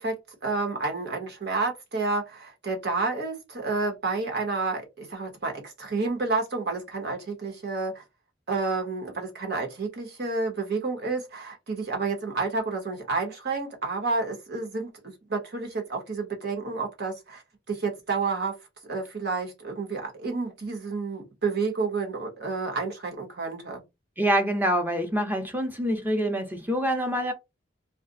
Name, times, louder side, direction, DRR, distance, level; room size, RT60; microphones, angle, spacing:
voice 1, 0.0-8.0 8.5-17.4 17.7-18.6 18.8-23.8, right 3 dB, 60° right, 1.2 m, -30 dB
voice 2, 24.2-27.3, equal, 10° right, 0.7 m, -26 dB
2.4 x 2.2 x 3.9 m
head